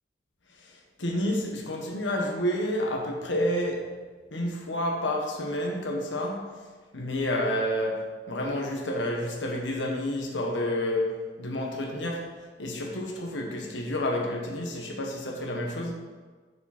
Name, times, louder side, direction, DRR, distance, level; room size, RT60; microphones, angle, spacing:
voice 1, 1.0-3.9 4.3-6.6 6.9-12.3 12.6-15.9, left 1 dB, 80° left, 1 dB, 1.2 m, -29 dB
7.3 x 6.7 x 4.2 m, 1.4 s
head